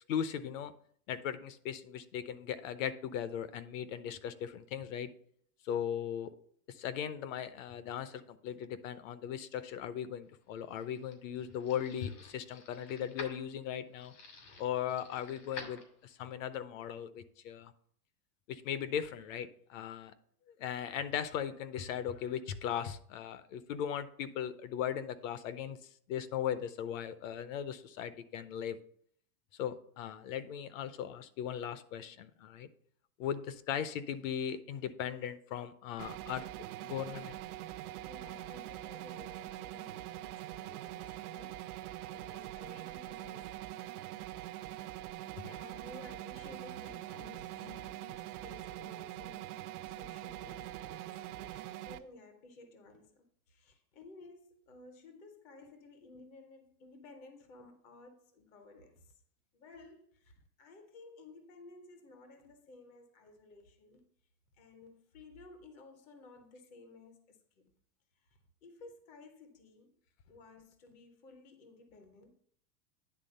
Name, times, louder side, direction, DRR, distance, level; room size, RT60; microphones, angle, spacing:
voice 1, 0.1-0.7 1.1-5.1 5.6-6.3 6.7-14.1 14.6-17.7 18.5-20.1 20.6-25.8 26.1-28.8 29.6-32.7 33.2-36.5 36.8-37.4 45.4-45.6, left 9 dB, 60° left, 0.7 m, -38 dB
sound 1, 10.4-16.3, left 4 dB, 85° left, 2.5 m, -51 dB
sound 2, 36.0-52.0, right 14 dB, 70° right, 0.7 m, -44 dB
voice 2, 38.0-43.6 45.5-59.2 59.5-64.0 64.6-67.7 68.2-70.0 70.3-72.3, left 3 dB, 15° left, 0.4 m, -55 dB
9.7 x 3.5 x 5.4 m
supercardioid pair, 165°, 46 cm